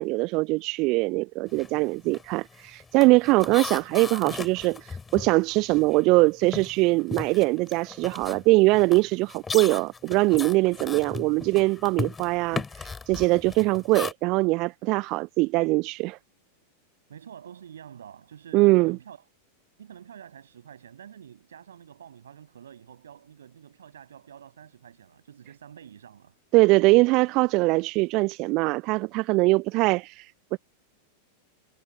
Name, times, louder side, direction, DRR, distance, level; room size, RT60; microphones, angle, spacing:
voice 1, 0.0-16.2 18.5-19.0 26.5-30.6, right 23 dB, 40° right, 0.5 m, -22 dB
sound 1, 1.5-1.8 2.0-6.1 6.4-14.1, left 4 dB, 15° left, 6.3 m, -37 dB
voice 2, 17.1-19.2 19.8-26.4, right 9 dB, 65° right, 8.0 m, -47 dB
figure-of-eight pair, 90°, 0 cm